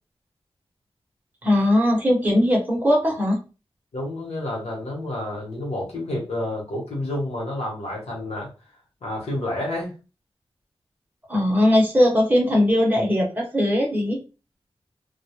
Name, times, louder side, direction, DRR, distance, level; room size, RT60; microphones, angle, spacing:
voice 1, 1.4-3.4 11.3-14.2, left 1 dB, 15° right, -2 dB, 0.9 m, -19 dB
voice 2, 3.9-8.5 9.0-9.9, left 1 dB, 90° left, -3 dB, 0.9 m, -29 dB
2.2 x 2.0 x 2.9 m, 0.32 s
wide cardioid pair, 100°, 10 cm